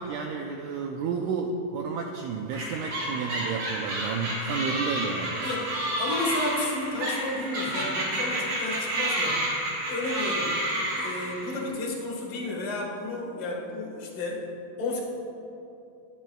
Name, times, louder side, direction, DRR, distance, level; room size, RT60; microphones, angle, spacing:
voice 1, 0.0-5.4, right 5 dB, 85° right, 2 dB, 1.8 m, -31 dB
sound 1, 2.5-11.6, right 1 dB, 70° right, 3.8 m, -30 dB
voice 2, 5.4-9.4 9.9-10.5 10.9-14.5 14.8-15.0, left 2 dB, 65° left, -2 dB, 3.1 m, -32 dB
19.5 x 10.5 x 2.3 m, 2.8 s
omnidirectional pair, 4.2 m